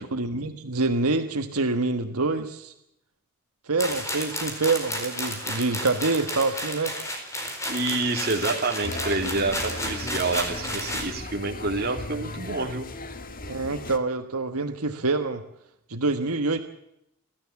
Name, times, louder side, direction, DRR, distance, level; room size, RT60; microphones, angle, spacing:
voice 1, 0.1-2.7 3.6-6.9 13.5-15.4 15.9-16.6, right 3 dB, 85° right, 7 dB, 1.5 m, -26 dB
sound 1, 3.8-11.1, left 1 dB, 15° left, 4.3 m, -32 dB
voice 2, 7.7-12.9, right 3 dB, 45° right, 3 dB, 3.1 m, -28 dB
sound 2, 8.8-14.0, left 2 dB, 40° left, 1.6 m, -37 dB
29.5 x 13.5 x 7.2 m, 0.81 s
head